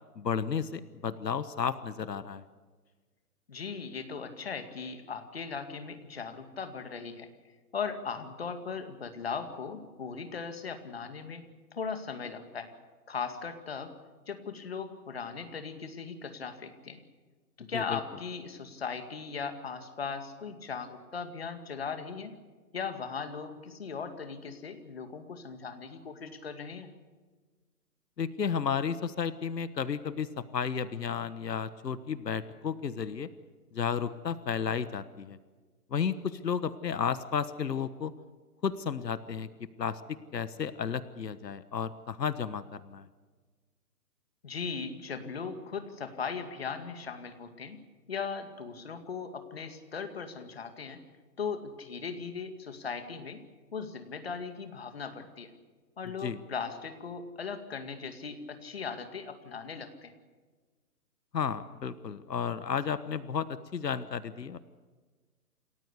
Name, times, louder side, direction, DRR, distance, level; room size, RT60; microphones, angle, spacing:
voice 1, 0.2-2.4 17.7-18.0 28.2-33.3 33.7-35.4 35.9-38.1 38.6-39.5 39.8-40.0 40.3-43.0 56.2-56.4 61.3-63.5 63.7-64.6, left 7 dB, 90° left, 14 dB, 1.4 m, -32 dB
voice 2, 3.5-7.3 7.7-11.4 11.7-12.7 13.1-13.9 14.3-17.0 17.7-22.3 22.7-26.9 44.4-47.8 48.1-51.0 51.4-53.4 53.7-55.5 56.0-60.1, left 5 dB, 40° left, 8 dB, 2.2 m, -38 dB
28.5 x 14.5 x 8.2 m, 1.4 s
hypercardioid pair, 180°, 48 cm